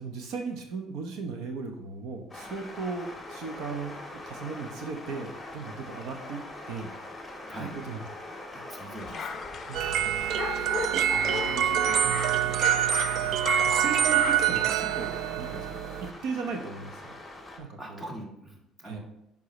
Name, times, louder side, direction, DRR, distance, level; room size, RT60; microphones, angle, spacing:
voice 1, 0.0-6.9 7.6-8.0 9.7-12.6 13.2-17.2 17.6-18.0 18.8-19.0, right 4 dB, 75° right, 4 dB, 1.0 m, -38 dB
sound 1, 2.3-17.6, left 1 dB, 5° left, 1.9 m, -43 dB
voice 2, 8.5-9.4 17.8-19.0, right 1 dB, 15° right, -1 dB, 1.7 m, -42 dB
sound 2, 9.0-14.6, left 6 dB, 35° left, 0.6 m, -37 dB
sound 3, 9.7-16.1, right 10 dB, 60° right, 0.3 m, -26 dB
10.0 x 5.4 x 3.2 m, 0.82 s
cardioid pair, 130°, 0 cm